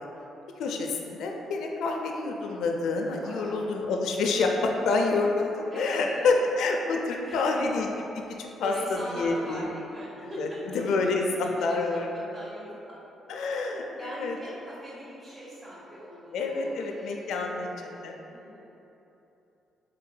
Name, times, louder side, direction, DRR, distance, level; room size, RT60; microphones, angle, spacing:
voice 1, 0.6-7.9 8.4-8.7 9.1-9.6 10.2-10.5 10.7-12.3 13.3-14.3 16.3-17.7 18.0-18.2, left 3 dB, 80° left, 2 dB, 0.3 m, -28 dB
voice 2, 3.0-3.7 5.7-6.4 7.2-7.6 8.6-10.6 11.7-12.9 14.0-18.8, equal, 30° right, -10 dB, 1.1 m, -41 dB
4.1 x 3.2 x 2.2 m, 2.9 s
cardioid pair, 90°, 0 cm